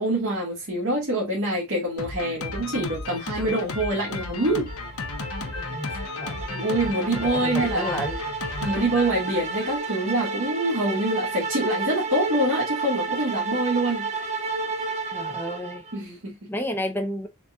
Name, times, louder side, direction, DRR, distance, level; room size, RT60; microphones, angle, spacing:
voice 1, 0.0-4.7 6.5-8.0 8.6-14.1 15.9-16.5, right 1 dB, 60° right, 1.6 m, -25 dB
Drum kit, 2.0-9.8, left 3 dB, 85° left, 0.8 m, -34 dB
sound 1, 4.7-16.0, right 4 dB, 30° right, 0.6 m, -31 dB
voice 2, 5.6-5.9 6.2-6.6 7.1-8.2 15.1-15.9 16.5-17.3, equal, 10° left, 0.6 m, -31 dB
4.0 x 4.0 x 2.3 m
head